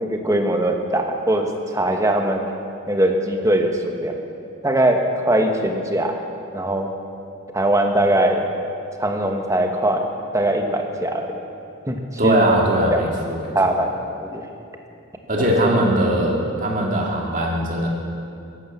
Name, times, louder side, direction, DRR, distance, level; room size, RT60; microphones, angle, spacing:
voice 1, 0.0-1.5 1.7-2.4 2.9-4.2 4.6-6.2 6.5-6.9 7.5-8.5 9.0-10.1 10.3-11.4 11.9-12.0 12.2-12.5 12.9-13.0 13.5-13.9 14.2-14.4 15.4-15.5, right 1 dB, 15° right, 3 dB, 1.2 m, -21 dB
voice 2, 12.2-13.5 15.3-17.9, right 1 dB, 35° right, -1 dB, 2.4 m, -20 dB
14.5 x 11.5 x 7.3 m, 2.5 s
head